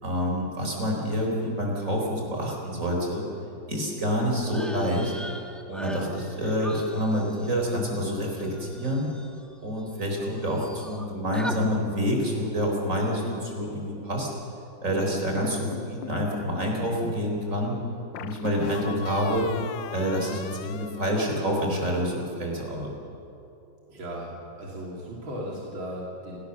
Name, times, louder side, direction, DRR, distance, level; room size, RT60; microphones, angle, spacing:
voice 1, 0.0-3.3 3.7-5.1 5.7-9.1 9.6-14.3 14.8-17.8 18.2-19.5 19.9-22.9, equal, 40° right, 0 dB, 4.6 m, -27 dB
sound 1, 4.5-10.1 10.3-11.0 11.3-11.6, equal, ahead, 1.1 m, -41 dB
sound 2, 15.4-16.2 18.1-21.8, left 8 dB, 75° left, 1.3 m, -38 dB
voice 2, 23.9-26.4, equal, 80° right, -3 dB, 3.8 m, -36 dB
28.5 x 17.5 x 7.0 m, 2.8 s
omnidirectional pair, 2.1 m